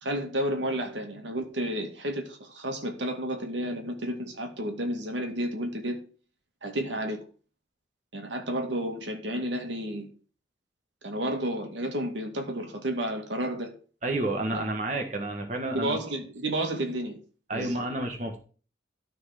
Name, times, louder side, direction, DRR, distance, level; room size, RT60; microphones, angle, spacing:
voice 1, 0.0-6.0 6.6-7.2 8.1-10.1 11.0-13.7 14.5-14.6 15.7-17.2 17.5-17.8, right 1 dB, 80° right, 2.3 m, -31 dB
voice 2, 14.0-16.0 17.5-18.4, right 2 dB, 40° right, 1.5 m, -30 dB
13.0 x 4.6 x 5.9 m
head